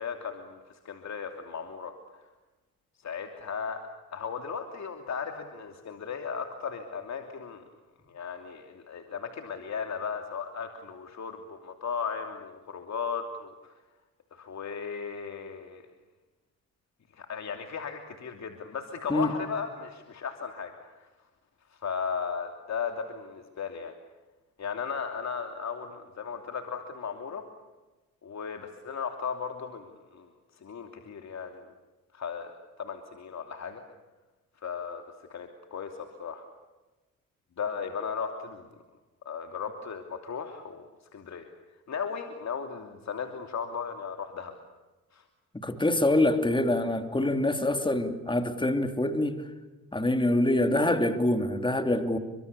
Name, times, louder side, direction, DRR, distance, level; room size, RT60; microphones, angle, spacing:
voice 1, 0.0-2.2 3.0-3.8 4.1-7.6 8.1-13.8 14.3-15.8 17.1-21.1 21.7-23.9 24.6-27.4 28.2-30.3 30.6-31.6 32.1-32.5 32.8-33.8 34.6-35.0 35.3-36.4 37.6-38.7 39.2-40.9 41.1-41.5 41.9-44.5 45.1-45.2, left 6 dB, 50° left, 5 dB, 2.9 m, -36 dB
voice 2, 45.6-49.4 49.9-52.2, left 1 dB, 15° left, 7 dB, 3.2 m, -25 dB
30.0 x 25.0 x 6.9 m, 1.2 s
supercardioid pair, 70°, 36 cm